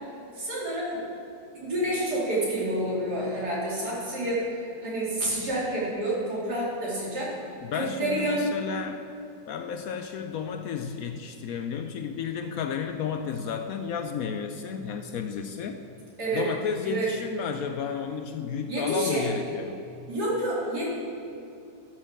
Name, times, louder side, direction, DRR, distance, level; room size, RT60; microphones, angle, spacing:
voice 1, 0.4-1.0 1.5-7.3 7.7-8.4 16.2-16.5 16.8-17.1 18.7-19.3 20.1-20.9, right 1 dB, 70° right, -6 dB, 3.5 m, -29 dB
voice 2, 7.6-9.0 9.5-15.8 16.3-19.8, left 7 dB, 70° left, 7 dB, 0.9 m, -32 dB
12.5 x 6.6 x 6.1 m, 2.7 s
omnidirectional pair, 1.8 m